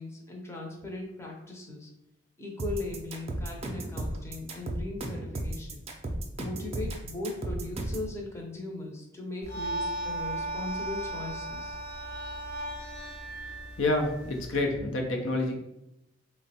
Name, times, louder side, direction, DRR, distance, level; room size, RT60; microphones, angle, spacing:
voice 1, 0.0-1.9 2.4-5.8 6.4-11.8, left 2 dB, 15° left, -1 dB, 0.6 m, -38 dB
sound 1, 2.6-8.1, right 1 dB, 30° right, 0.4 m, -34 dB
sound 2, 9.4-14.6, right 1 dB, 55° left, 0.9 m, -36 dB
voice 2, 13.8-15.5, left 2 dB, 80° left, 2 dB, 0.7 m, -28 dB
3.4 x 2.1 x 4.1 m, 0.86 s
head